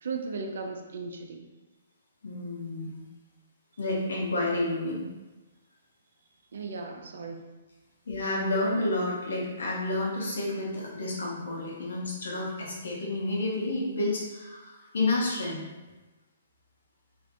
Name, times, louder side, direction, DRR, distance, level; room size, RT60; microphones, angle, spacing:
voice 1, 0.0-1.4 6.5-7.5, right 4 dB, 70° right, 3 dB, 0.4 m, -36 dB
voice 2, 2.2-3.0 3.8-5.0 8.1-15.6, left 2 dB, 80° left, -4 dB, 0.8 m, -30 dB
2.4 x 2.1 x 2.8 m, 1.2 s
hypercardioid pair, 150°, 0 cm